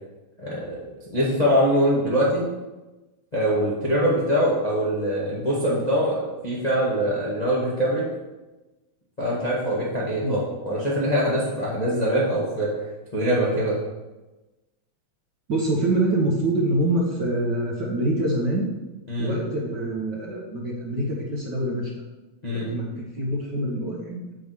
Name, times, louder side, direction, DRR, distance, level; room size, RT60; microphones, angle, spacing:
voice 1, 0.4-0.8 1.1-2.5 3.3-8.0 9.2-12.7 13.1-13.8 19.1-19.3 22.4-22.7, equal, 20° left, -6 dB, 1.1 m, -23 dB
voice 2, 15.5-18.7 19.2-21.9 22.5-24.2, right 1 dB, 50° right, -3 dB, 1.3 m, -25 dB
6.9 x 4.8 x 6.7 m, 1.1 s
omnidirectional pair, 3.4 m